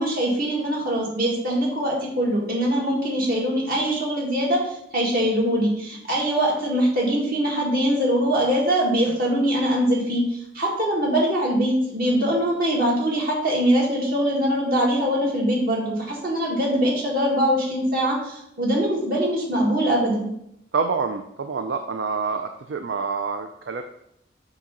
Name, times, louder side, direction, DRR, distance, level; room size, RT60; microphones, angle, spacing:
voice 1, 0.0-20.3, equal, 55° right, -3 dB, 1.9 m, -22 dB
voice 2, 20.7-23.8, right 5 dB, 70° right, 7 dB, 0.4 m, -27 dB
7.4 x 2.8 x 5.3 m, 0.76 s
head